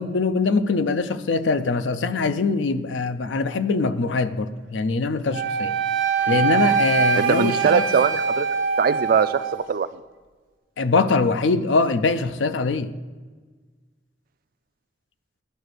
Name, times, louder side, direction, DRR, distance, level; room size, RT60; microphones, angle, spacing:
voice 1, 0.0-5.7 6.3-7.9 10.8-12.9, left 3 dB, 80° left, 11 dB, 0.5 m, -23 dB
Wind instrument woodwind instrument, 5.3-9.6, right 5 dB, 90° right, 1.0 m, -23 dB
voice 2, 7.1-8.5 8.8-9.9, right 6 dB, 50° right, 14 dB, 0.4 m, -21 dB
10.5 x 4.0 x 6.7 m, 1.4 s
head